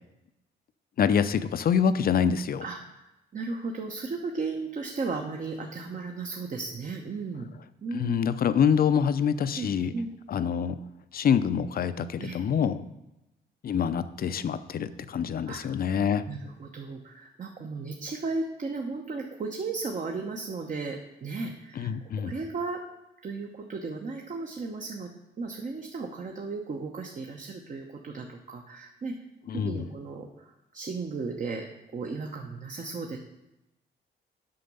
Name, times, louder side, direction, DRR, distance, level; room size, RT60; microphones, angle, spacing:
voice 1, 1.0-2.6 7.9-9.9 10.3-10.8 11.1-12.8 13.6-16.3 21.8-22.3 29.5-29.8, left 7 dB, 50° left, 12 dB, 0.6 m, -26 dB
voice 2, 2.6-3.0 3.3-7.5 7.8-8.2 9.5-10.1 12.2-12.4 15.5-15.6 16.3-21.9 22.2-22.8 23.2-25.1 25.4-29.2 29.5-33.2, right 4 dB, 40° right, 2 dB, 1.0 m, -35 dB
7.8 x 6.1 x 5.4 m, 0.93 s
cardioid pair, 90°, 20 cm